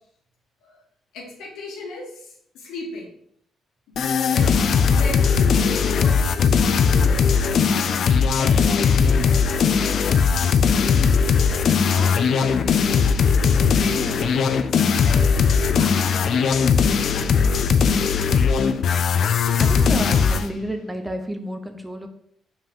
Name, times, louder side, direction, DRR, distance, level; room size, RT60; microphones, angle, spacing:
voice 1, 1.1-3.1 4.2-4.5 4.9-11.1 11.8-13.0 13.6-16.6 17.7-17.9 19.7-20.0, left 3 dB, 90° left, -1 dB, 2.1 m, -36 dB
sound 1, 4.0-20.5, left 6 dB, 60° left, 0.5 m, -19 dB
voice 2, 13.9-14.3 17.4-17.6 19.6-22.1, right 1 dB, 10° right, 6 dB, 0.9 m, -31 dB
5.3 x 5.0 x 3.7 m, 0.65 s
cardioid pair, 90°, 0 cm